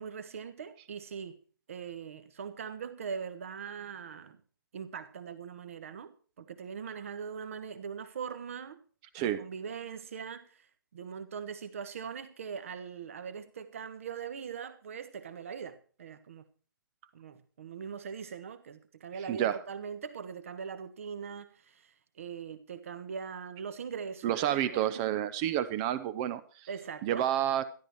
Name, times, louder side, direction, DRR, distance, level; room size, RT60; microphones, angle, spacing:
voice 1, 0.0-1.4 1.7-4.4 4.7-8.8 9.2-10.7 10.9-16.4 17.1-25.0 26.7-27.3, right 6 dB, 40° right, 1.3 m, -41 dB
voice 2, 19.3-19.6 24.2-26.7 27.0-27.6, right 11 dB, 15° right, 0.6 m, -29 dB
13.0 x 11.5 x 4.6 m
figure-of-eight pair, 140°, 11 cm